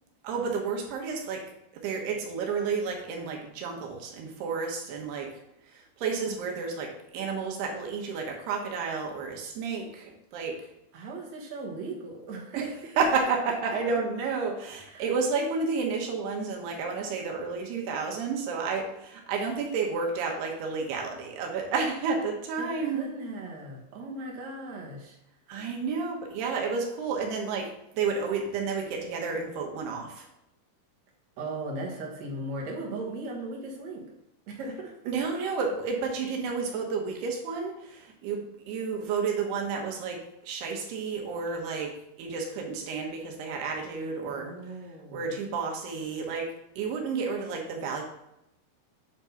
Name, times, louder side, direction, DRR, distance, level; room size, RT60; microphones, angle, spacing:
voice 1, 0.2-1.4 1.7-5.3 5.7-10.6 12.6-12.7 13.0-23.1 25.5-30.3 35.1-40.2 40.5-44.6 45.1-48.0, right 5 dB, 80° right, 1 dB, 3.2 m, -31 dB
voice 2, 10.9-12.7 14.9-15.1 22.6-25.2 31.4-34.0 34.5-34.9 44.3-45.3, right 2 dB, 60° right, -1 dB, 2.1 m, -38 dB
8.5 x 3.7 x 5.7 m, 0.82 s
omnidirectional pair, 4.6 m